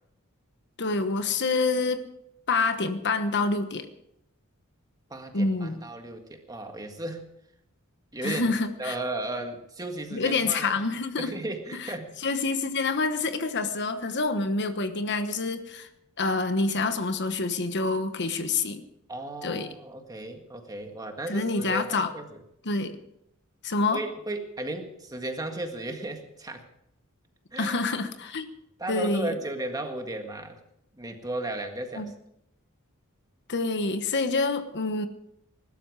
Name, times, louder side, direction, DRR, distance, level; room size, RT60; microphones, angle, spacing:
voice 1, 0.8-2.0 2.5-3.9 5.3-5.8 8.2-8.9 10.1-11.3 11.7-11.9 12.2-15.9 16.2-18.8 19.4-19.7 21.3-22.1 22.6-23.0 23.6-24.0 27.6-28.5 28.9-29.3 32.0-32.1 33.5-35.1, left 3 dB, 55° left, 9 dB, 1.2 m, -27 dB
voice 2, 5.1-7.3 8.1-10.8 11.2-12.2 19.1-22.4 23.9-26.6 27.5-27.8 28.8-30.6 30.9-32.1, right 2 dB, 20° right, 5 dB, 1.8 m, -35 dB
20.5 x 12.5 x 4.8 m, 0.78 s
head